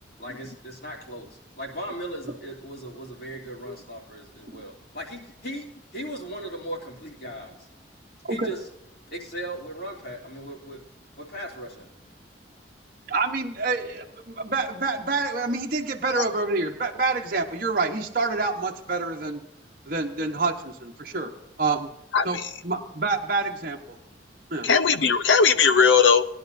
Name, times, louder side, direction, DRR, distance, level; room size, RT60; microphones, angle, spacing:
voice 1, 0.2-7.7 8.3-8.6 9.1-10.8 11.2-11.9, right 1 dB, 55° left, -2 dB, 3.0 m, -37 dB
voice 2, 13.1-19.4 19.9-21.3 21.6-21.9 22.2-22.4 22.6-24.0 24.5-24.7, right 3 dB, 50° right, 1 dB, 1.1 m, -27 dB
voice 3, 22.1-22.5 24.6-26.3, left 6 dB, 85° left, 12 dB, 0.7 m, -19 dB
19.5 x 11.0 x 2.7 m, 0.84 s
head